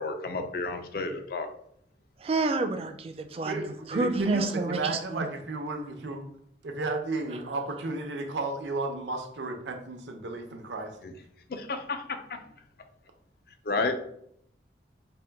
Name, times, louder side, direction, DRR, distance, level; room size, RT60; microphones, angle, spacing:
voice 1, 0.0-1.5 11.0-11.1 11.5-12.4 13.7-13.9, left 3 dB, 55° left, 7 dB, 0.4 m, -31 dB
voice 2, 2.2-5.3, right 3 dB, 35° right, 7 dB, 0.3 m, -29 dB
voice 3, 3.4-6.2 6.6-10.9, right 3 dB, 90° right, 4 dB, 0.6 m, -33 dB
4.3 x 2.2 x 3.4 m, 0.70 s
head